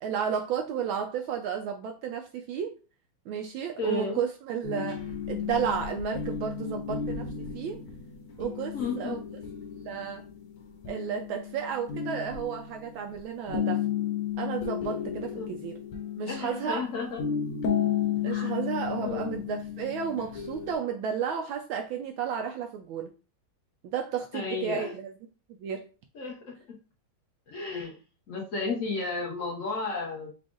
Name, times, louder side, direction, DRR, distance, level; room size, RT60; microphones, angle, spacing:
voice 1, 0.0-2.8 3.3-7.8 8.4-9.2 9.8-10.2 10.9-13.8 14.4-15.8 16.2-16.8 18.2-23.1 23.8-25.1 25.6-25.9, right 7 dB, 75° right, 1.3 m, -32 dB
voice 2, 3.8-4.2 8.7-9.2 15.4-15.5 16.2-17.2 18.3-18.5 18.9-19.4 24.3-24.9 26.1-26.4 27.5-28.0 28.3-30.3, left 4 dB, 45° left, 1.2 m, -33 dB
sound 1, 4.6-13.1 13.5-20.7, left 8 dB, 85° left, 1.9 m, -33 dB
5.0 x 2.4 x 3.8 m
omnidirectional pair, 2.4 m